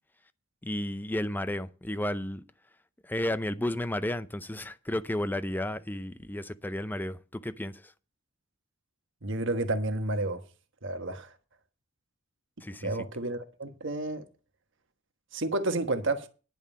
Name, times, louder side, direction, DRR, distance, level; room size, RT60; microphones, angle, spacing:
voice 1, 0.6-2.4 3.0-7.9 12.6-12.9, left 1 dB, 10° left, 0.5 m, -32 dB
voice 2, 9.2-10.4 10.8-11.3 12.8-14.2 15.3-16.3, right 2 dB, 65° right, 1.3 m, -30 dB
10.5 x 5.5 x 8.4 m
head